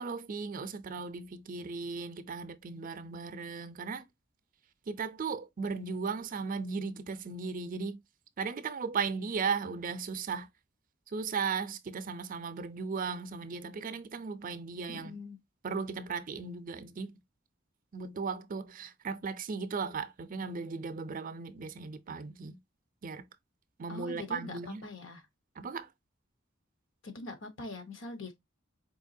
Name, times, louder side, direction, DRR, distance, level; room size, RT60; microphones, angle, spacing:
voice 1, 0.0-4.1 4.9-8.0 8.4-10.5 11.1-15.2 15.6-17.2 17.9-22.6 23.0-23.2 23.8-24.8 25.6-25.9, right 5 dB, 45° right, 0.5 m, -36 dB
voice 2, 14.9-15.4 23.9-25.2 27.0-28.4, left 2 dB, 75° left, 1.1 m, -43 dB
4.5 x 2.9 x 2.6 m
head